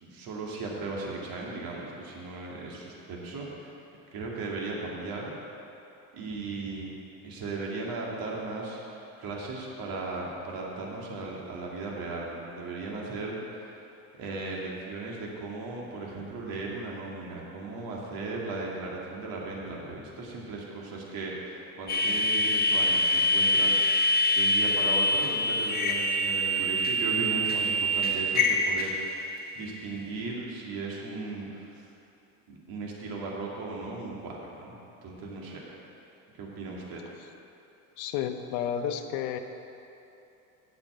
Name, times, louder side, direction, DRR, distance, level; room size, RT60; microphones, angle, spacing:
voice 1, 0.0-3.7 4.1-5.3 6.1-6.9 7.2-13.8 14.1-29.2 29.6-31.8 32.5-34.8 35.0-35.7 36.4-37.0, right 3 dB, 60° right, -3 dB, 2.2 m, -37 dB
sound 1, 21.9-29.5, left 1 dB, 25° left, 1.4 m, -25 dB
voice 2, 38.0-39.4, left 9 dB, 75° left, 7 dB, 0.8 m, -31 dB
8.8 x 5.9 x 7.7 m, 2.8 s
supercardioid pair, 95°, 40 cm